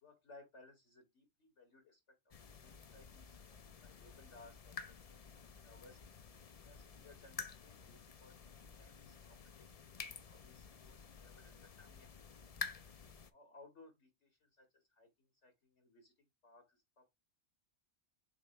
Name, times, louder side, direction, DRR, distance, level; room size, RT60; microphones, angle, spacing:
voice 1, 0.0-4.8 5.0-5.2 5.5-6.0 6.6-9.7 10.1-12.1 13.3-17.1, left 2 dB, 85° left, 2.8 m, -63 dB
sound 1, 2.3-13.3, left 5 dB, 40° left, 0.6 m, -51 dB
7.4 x 3.0 x 4.5 m
omnidirectional pair, 1.2 m